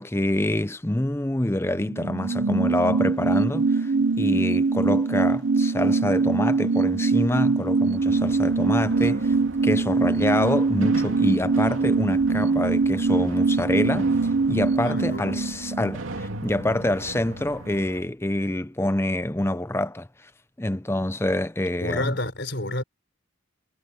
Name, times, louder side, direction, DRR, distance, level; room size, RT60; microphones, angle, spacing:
voice 1, 0.0-9.4 9.6-20.3 20.6-22.1, left 1 dB, 10° left, 0.6 m, -26 dB
sound 1, 1.7-16.9 17.2-17.3, right 4 dB, 60° right, 0.8 m, -23 dB
sound 2, 8.0-18.0, right 2 dB, 75° right, 2.8 m, -38 dB
voice 2, 14.8-15.6 21.8-22.8, left 1 dB, 55° left, 5.3 m, -30 dB
head